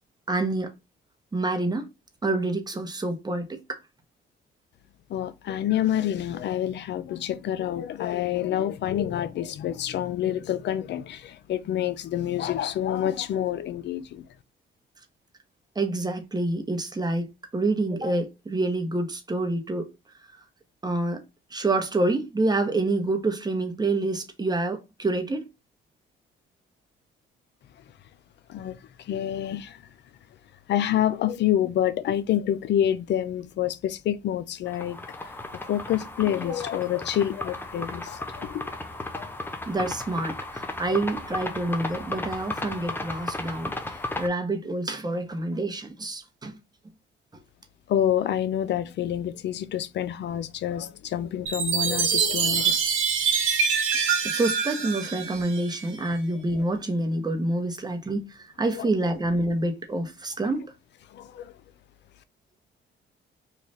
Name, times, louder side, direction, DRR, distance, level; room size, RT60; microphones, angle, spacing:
voice 1, 0.3-0.7 1.3-1.9 2.2-3.8 15.8-19.9 20.8-21.2 21.5-25.5 39.7-46.6 54.2-60.7, right 2 dB, 20° right, 0.8 m, -27 dB
voice 2, 5.1-14.2 28.5-29.8 30.7-35.3 35.7-38.7 39.1-39.3 47.9-52.8 58.8-58.9 61.1-61.5, left 11 dB, 60° left, 0.5 m, -27 dB
sound 1, 34.7-44.3, left 2 dB, 10° left, 0.5 m, -35 dB
Chime, 51.5-56.0, right 6 dB, 85° right, 0.9 m, -25 dB
3.2 x 2.3 x 4.0 m
cardioid pair, 90°, 20 cm